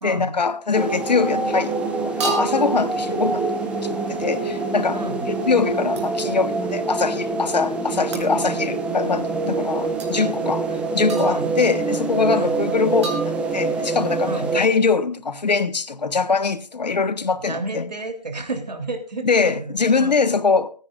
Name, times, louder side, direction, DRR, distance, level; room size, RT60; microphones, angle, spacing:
voice 1, 0.0-3.5 3.8-5.0 5.3-17.9 19.2-20.7, left 4 dB, 85° left, 1.3 m, -22 dB
sound 1, 0.7-14.6, right 3 dB, 5° right, 1.0 m, -25 dB
sound 2, 0.9-1.1 2.2-2.8 6.0-6.2 8.1-8.4 10.0-10.1 11.1-11.6 13.0-13.8, right 4 dB, 45° right, 3.5 m, -32 dB
voice 2, 17.4-20.1, right 2 dB, 85° right, 3.2 m, -31 dB
25.0 x 9.9 x 2.5 m
hypercardioid pair, 160°, 21 cm